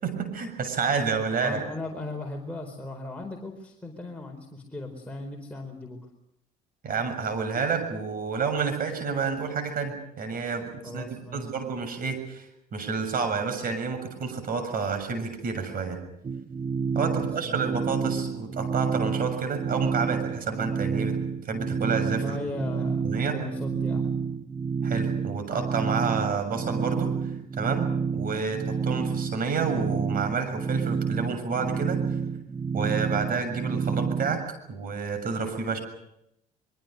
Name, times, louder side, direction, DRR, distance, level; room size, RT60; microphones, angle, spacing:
voice 1, 0.0-1.6 6.8-16.0 16.9-21.2 21.4-22.4 23.0-23.4 24.8-32.0 32.7-34.4 34.7-35.8, right 5 dB, 45° right, 7 dB, 6.8 m, -29 dB
voice 2, 1.4-6.0 10.8-11.5 17.1-17.6 22.2-24.1, left 2 dB, 5° left, 0 dB, 4.6 m, -37 dB
sound 1, 16.2-34.5, right 6 dB, 25° right, 0.9 m, -29 dB
24.0 x 23.0 x 6.8 m, 0.82 s
hypercardioid pair, 55°, 20 cm